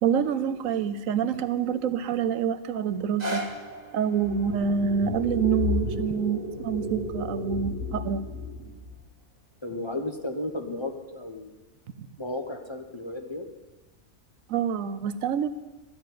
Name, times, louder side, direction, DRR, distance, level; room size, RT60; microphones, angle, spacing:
voice 1, 0.0-3.4 3.9-8.2 12.0-12.1 14.5-15.5, right 7 dB, 80° right, 13 dB, 1.1 m, -27 dB
sound 1, 2.9-9.0 9.7-9.8, right 1 dB, 30° right, 1.6 m, -41 dB
sound 2, 4.1-9.0, left 3 dB, 45° left, 6.1 m, -32 dB
voice 2, 9.6-11.6 12.2-13.4, left 1 dB, 25° left, 3 dB, 0.9 m, -34 dB
13.0 x 7.1 x 9.4 m, 1.1 s
omnidirectional pair, 1.4 m